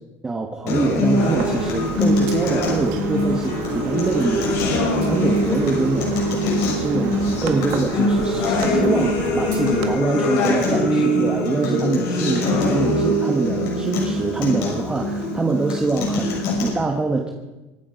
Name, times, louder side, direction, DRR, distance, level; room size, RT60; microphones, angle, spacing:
voice 1, 0.2-17.3, right 3 dB, 10° right, 2 dB, 1.2 m, -24 dB
Acoustic guitar, 0.7-16.7, left 1 dB, 75° left, 6.4 m, -22 dB
sound 1, 1.2-9.9, right 8 dB, 80° right, 1.7 m, -34 dB
sound 2, 1.5-10.9, right 3 dB, 45° right, 3.8 m, -35 dB
25.0 x 9.9 x 5.1 m, 1.1 s
cardioid pair, 160°, 7 cm